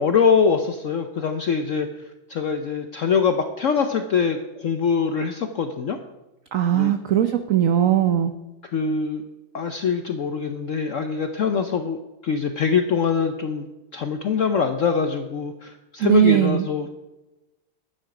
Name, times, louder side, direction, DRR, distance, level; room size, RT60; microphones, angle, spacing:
voice 1, 0.0-1.9 2.3-6.0 6.7-6.9 8.7-9.2 9.5-13.7 13.9-16.9, left 6 dB, 70° left, 7 dB, 0.7 m, -23 dB
voice 2, 6.5-8.3 16.0-16.6, right 10 dB, 85° right, 9 dB, 0.7 m, -19 dB
11.0 x 8.9 x 4.9 m, 1.0 s
omnidirectional pair, 2.1 m